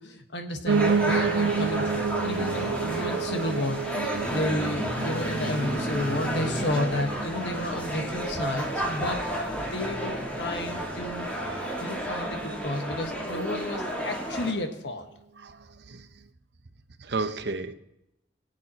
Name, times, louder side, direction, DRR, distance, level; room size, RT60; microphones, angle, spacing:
voice 1, 0.0-9.2 9.6-11.3 11.8-15.1, left 1 dB, 80° left, 5 dB, 1.4 m, -32 dB
sound 1, 0.7-14.5, equal, 10° left, 1.8 m, -31 dB
Piano, 0.7-9.8 10.2-11.3 11.6-11.7 11.9-12.0 12.3-12.4 12.9-13.0, right 5 dB, 85° right, 0.3 m, -30 dB
Telephone, 5.7-6.8, right 2 dB, 45° right, 1.5 m, -45 dB
voice 2, 15.4-16.1 17.0-17.7, right 3 dB, 65° right, 9 dB, 0.8 m, -33 dB
22.5 x 8.2 x 3.0 m, 0.88 s
head